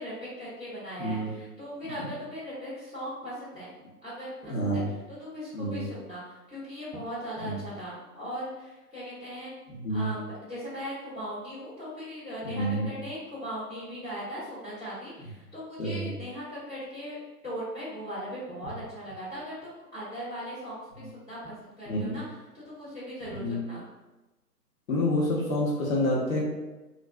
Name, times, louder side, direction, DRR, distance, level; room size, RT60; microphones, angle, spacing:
voice 1, 0.0-3.7 4.0-9.5 9.9-17.2 17.4-22.2 22.5-23.8, equal, 5° left, -24 dB, 0.6 m, -39 dB
voice 2, 1.0-1.3 4.5-4.9 5.5-5.8 7.4-7.5 9.7-10.1 12.4-12.9 15.8-16.1 21.9-22.2 23.3-23.6 24.9-26.4, equal, 55° left, -5 dB, 0.9 m, -28 dB
2.4 x 2.3 x 2.2 m, 1.1 s
figure-of-eight pair, 150°, 48 cm